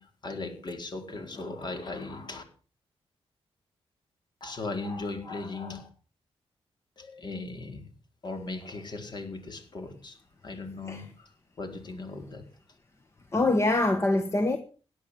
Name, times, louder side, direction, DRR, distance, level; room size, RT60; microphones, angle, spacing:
voice 1, 0.0-2.4 4.4-5.9 7.0-7.9 8.2-10.2 10.4-12.5, left 3 dB, 45° left, 4.5 m, -38 dB
voice 2, 13.3-14.6, left 2 dB, 25° left, 1.5 m, -24 dB
17.0 x 10.5 x 7.2 m
wide cardioid pair, 125°, 10 cm